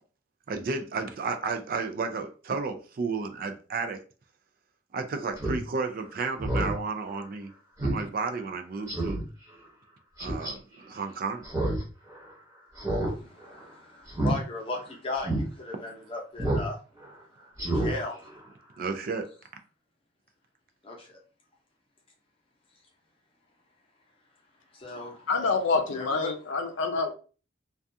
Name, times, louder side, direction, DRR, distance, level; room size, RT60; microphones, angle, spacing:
voice 1, 0.5-4.0 4.9-7.5 7.8-9.2 10.2-11.5 18.8-19.3, right 4 dB, 50° right, 6 dB, 0.3 m, -32 dB
Speech synthesizer, 5.4-5.6 6.0-6.1 6.4-6.7 7.1-7.2 7.8-8.0 8.4-8.5 8.9-9.2 10.2-10.5 11.4-11.8 12.1-12.2 12.8-13.1 13.4-13.6 14.1-14.3 14.8-14.9 15.2-15.4 16.4-16.7 17.0-17.1 17.6-17.9 18.2-18.3, right 1 dB, 20° right, 0.9 m, -28 dB
voice 2, 13.1-16.8 17.6-18.2 20.8-21.2 24.7-25.6 25.9-26.3, left 2 dB, 30° left, -1 dB, 0.7 m, -37 dB
voice 3, 25.3-27.1, left 4 dB, 75° left, 4 dB, 0.5 m, -27 dB
2.3 x 2.3 x 2.6 m, 0.37 s
head